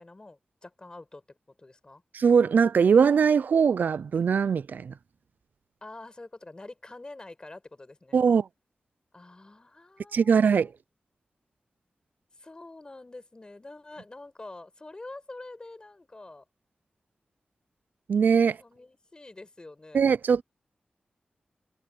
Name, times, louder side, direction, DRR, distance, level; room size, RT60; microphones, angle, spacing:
voice 1, 0.0-2.0 5.8-8.2 9.1-10.7 12.4-16.4 18.6-20.1, left 2 dB, 30° left, 5.0 m, -46 dB
voice 2, 2.1-4.9 8.1-8.5 10.1-10.7 18.1-18.6 19.9-20.4, right 6 dB, 80° right, 0.4 m, -21 dB
wide cardioid pair, 95°, 3 cm